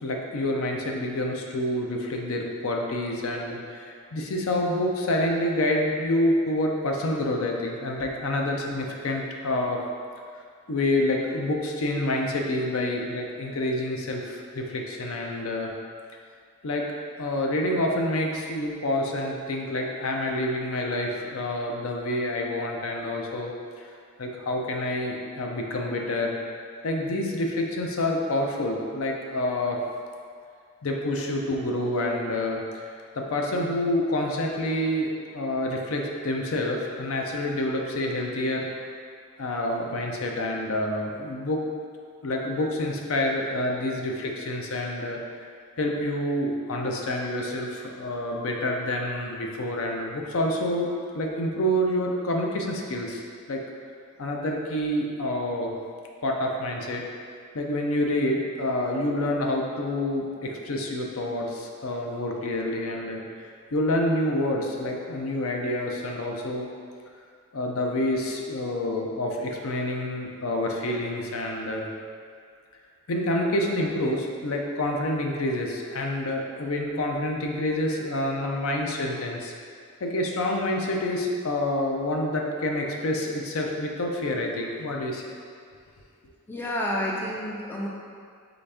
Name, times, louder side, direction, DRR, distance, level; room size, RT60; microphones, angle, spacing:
voice 1, 0.0-9.8 10.7-15.7 16.6-16.9 17.2-23.5 23.8-23.9 24.2-26.4 26.8-29.8 30.8-38.7 39.4-41.6 42.2-45.2 45.8-50.9 51.1-53.2 53.5-53.6 54.2-55.8 56.2-57.0 57.5-63.2 63.7-66.7 67.5-71.9 73.1-79.5 80.0-85.2, left 1 dB, 70° left, 0 dB, 0.5 m, -27 dB
voice 2, 86.5-87.9, left 1 dB, 10° left, -3 dB, 0.3 m, -29 dB
4.0 x 3.3 x 3.4 m, 2.2 s
head